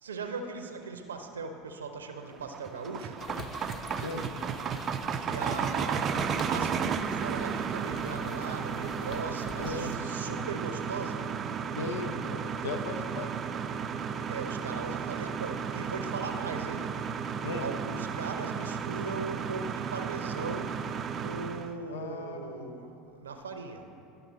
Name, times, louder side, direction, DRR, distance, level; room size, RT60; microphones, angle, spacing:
voice 1, 0.0-3.2 5.2-11.3 14.3-16.9 17.6-20.8 21.1-23.8, right 4 dB, 90° right, 6 dB, 0.6 m, -39 dB
sound 1, 2.3-21.7, right 7 dB, 40° right, 0.4 m, -33 dB
sound 2, 3.2-10.0, left 5 dB, 40° left, 0.5 m, -46 dB
voice 2, 3.9-4.3 9.6-10.3 11.8-13.3 17.4-17.7 21.9-22.7, left 3 dB, 80° left, 6 dB, 0.7 m, -37 dB
11.5 x 5.8 x 4.0 m, 2.6 s
hypercardioid pair, 80°, 0 cm